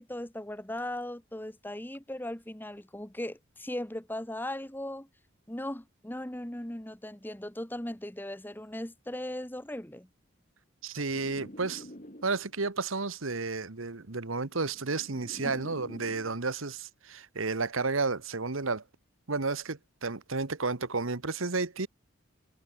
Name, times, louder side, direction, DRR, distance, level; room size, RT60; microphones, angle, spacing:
voice 1, 0.0-5.1 5.5-10.1 15.4-15.5, left 1 dB, 10° left, 1.3 m, -38 dB
voice 2, 10.8-11.9 12.2-18.8 19.3-21.9, right 3 dB, 80° right, 1.5 m, -32 dB
sound 1, 11.1-12.7 13.7-16.4, equal, 40° left, 7.8 m, -48 dB
head